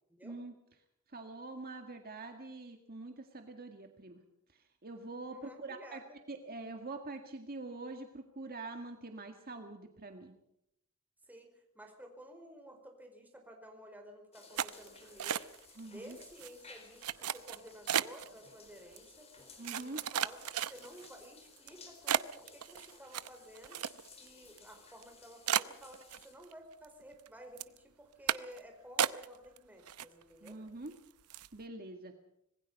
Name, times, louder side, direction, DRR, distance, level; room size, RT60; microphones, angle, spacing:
voice 1, 0.2-0.5 1.1-4.2 4.8-6.0 6.3-10.3 15.8-16.2 19.6-20.0 30.4-30.9 31.5-32.1, right 2 dB, 45° right, 5 dB, 1.8 m, -45 dB
voice 2, 5.3-6.2 11.3-15.5 15.8-19.3 19.7-23.8 24.2-30.6, equal, 10° right, 3 dB, 4.6 m, -53 dB
sound 1, 14.3-26.3, left 4 dB, 30° left, 4.2 m, -58 dB
sound 2, 14.6-15.8 16.1-16.5 17.0-18.3 19.0-19.1 19.6-21.1 21.6-21.7 22.1-24.3 24.6-24.7 25.0-25.1 25.5-26.5 26.8-27.3 27.6-27.8 28.3-28.6 29.0-29.6 29.9-30.5 30.9-31.0 31.3-31.6, right 9 dB, 85° right, 0.8 m, -34 dB
25.5 x 20.0 x 5.5 m, 0.80 s
head